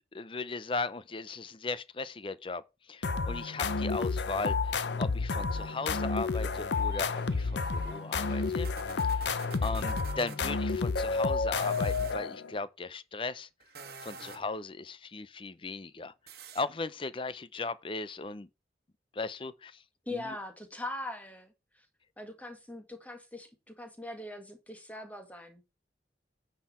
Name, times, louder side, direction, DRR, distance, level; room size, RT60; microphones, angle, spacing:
voice 1, 0.1-2.6 2.9-8.7 9.0-9.3 9.6-13.5 14.0-16.1 16.5-18.5 19.1-19.8 20.1-20.3, left 3 dB, 30° left, 0.5 m, -37 dB
sound 1, 3.0-12.5, left 4 dB, 80° left, 0.6 m, -31 dB
sound 2, 6.3-10.4 11.4-12.2 13.6-14.6 16.3-16.6, right 5 dB, 60° right, 1.4 m, -49 dB
voice 2, 20.1-21.9 22.2-25.6, left 2 dB, 10° left, 1.8 m, -41 dB
9.5 x 6.4 x 4.3 m
head